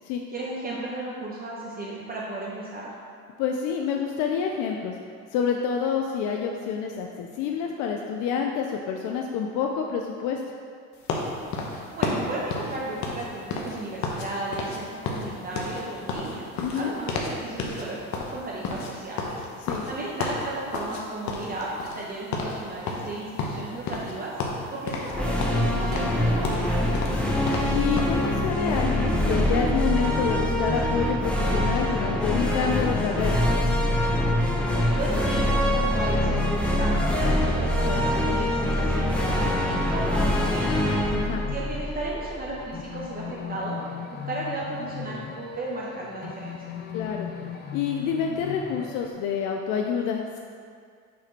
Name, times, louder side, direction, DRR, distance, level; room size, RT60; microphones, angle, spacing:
voice 1, 0.3-2.9 11.9-16.5 16.7-19.4 19.9-24.3 24.7-27.2 34.7-40.9 41.5-43.8 44.1-46.7, right 2 dB, 30° right, -5 dB, 0.8 m, -34 dB
voice 2, 3.4-4.9 5.3-10.4 16.6-16.9 19.6-19.8 27.7-33.4 41.1-41.4 46.9-47.3 47.7-50.4, left 7 dB, 85° left, 2 dB, 0.5 m, -28 dB
sound 1, 11.1-14.3 14.5-14.8 15.0-17.3 17.6-17.8 18.1-21.0 21.3-22.1 22.3-22.6 22.9-24.1 24.4-25.1 25.4-28.2, left 3 dB, 70° left, 1.0 m, -31 dB
sound 2, 25.1-42.5, left 1 dB, 5° left, 0.9 m, -24 dB
sound 3, 32.2-49.1, left 8 dB, 35° left, 0.5 m, -38 dB
6.0 x 4.2 x 4.3 m, 2.2 s
cardioid pair, 120°, 30 cm